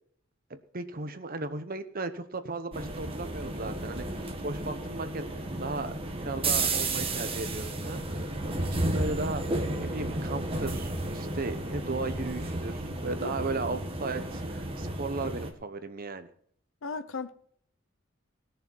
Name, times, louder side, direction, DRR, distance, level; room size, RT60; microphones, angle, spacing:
voice 1, 0.5-16.3, right 3 dB, 45° right, 10 dB, 1.0 m, -36 dB
sound 1, 2.7-15.5, right 2 dB, 30° right, 1.5 m, -33 dB
voice 2, 13.2-13.8 16.8-17.3, left 4 dB, 85° left, 11 dB, 0.7 m, -38 dB
17.5 x 6.8 x 5.5 m, 0.62 s
head